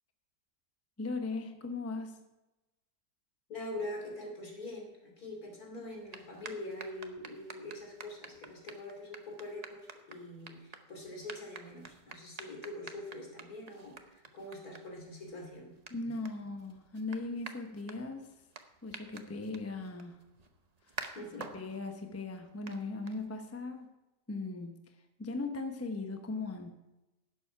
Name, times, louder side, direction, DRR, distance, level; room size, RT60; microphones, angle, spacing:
voice 1, 1.0-2.2 15.9-18.3 18.8-20.2 20.9-21.0 21.5-23.9 24.3-24.8 25.2-26.7, left 3 dB, 15° left, 5 dB, 0.5 m, -38 dB
voice 2, 3.5-15.7 21.1-21.5, left 1 dB, 60° left, 1 dB, 3.2 m, -44 dB
sound 1, 5.9-23.6, right 4 dB, 45° right, 0.5 m, -51 dB
11.0 x 7.9 x 5.7 m, 1.0 s
omnidirectional pair, 1.8 m